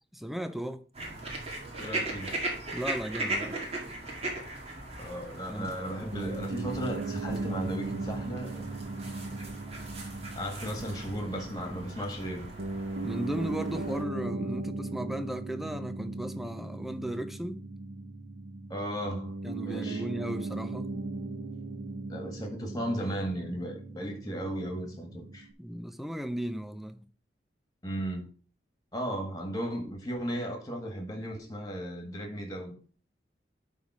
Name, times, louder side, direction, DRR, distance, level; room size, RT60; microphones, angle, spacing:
voice 1, 0.1-0.8 2.7-3.6 5.5-5.8 13.0-17.6 19.4-21.0 25.6-27.1, equal, ahead, 0.5 m, -36 dB
sound 1, 0.9-14.0, right 2 dB, 35° right, 2.0 m, -38 dB
voice 2, 1.8-2.3 5.0-9.0 10.4-12.5 18.7-19.4 19.7-20.0 22.1-25.5 27.8-28.3 28.9-32.8, equal, 20° left, 1.8 m, -35 dB
Piano, 6.1-25.5, right 3 dB, 70° right, 0.9 m, -38 dB
11.0 x 3.7 x 4.9 m
head